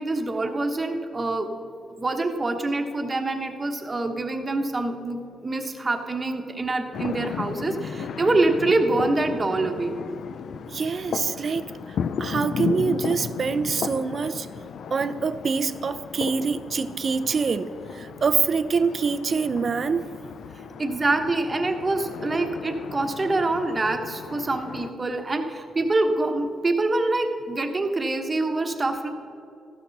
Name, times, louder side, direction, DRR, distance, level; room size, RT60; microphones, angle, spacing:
voice 1, 0.0-1.5 2.0-10.0 20.8-29.1, right 2 dB, 25° right, 4 dB, 1.2 m, -25 dB
sound 1, 6.9-24.9, left 7 dB, 70° left, 0.5 m, -35 dB
voice 2, 10.7-11.6 12.2-14.5 14.9-20.0, right 5 dB, 45° right, 12 dB, 0.6 m, -25 dB
14.0 x 12.5 x 4.1 m, 2.8 s
cardioid pair, 100°, 0 cm